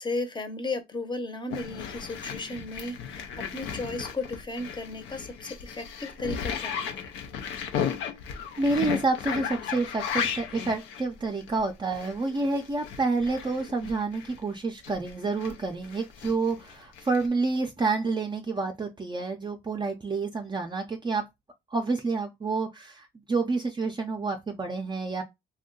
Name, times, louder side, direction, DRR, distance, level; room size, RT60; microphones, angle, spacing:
voice 1, 0.0-7.1, left 2 dB, 25° left, 0.7 m, -35 dB
sound 1, 1.5-14.4 14.8-17.3, left 7 dB, 90° left, 0.6 m, -35 dB
voice 2, 8.6-21.2 21.7-25.2, right 3 dB, 25° right, 0.5 m, -29 dB
2.6 x 2.2 x 3.7 m
cardioid pair, 90°, 20 cm